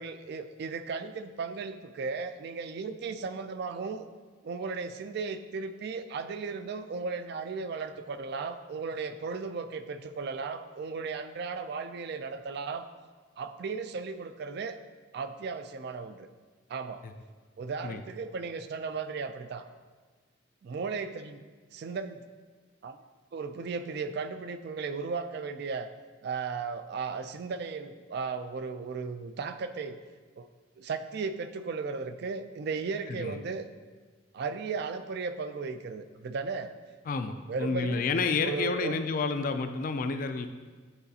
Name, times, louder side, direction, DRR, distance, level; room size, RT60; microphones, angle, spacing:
voice 1, 0.0-4.1 4.4-12.9 13.4-14.8 15.1-16.3 16.7-17.0 17.6-19.6 20.6-21.4 21.7-22.2 22.8-23.0 23.3-25.9 26.2-30.0 30.4-30.5 30.8-33.7 34.3-36.7 37.5-38.0 38.4-39.0, right 4 dB, 55° right, 10 dB, 0.3 m, -35 dB
voice 2, 33.1-33.4 37.1-40.5, left 4 dB, 40° left, 8 dB, 0.3 m, -30 dB
8.9 x 4.0 x 2.8 m, 1.4 s
head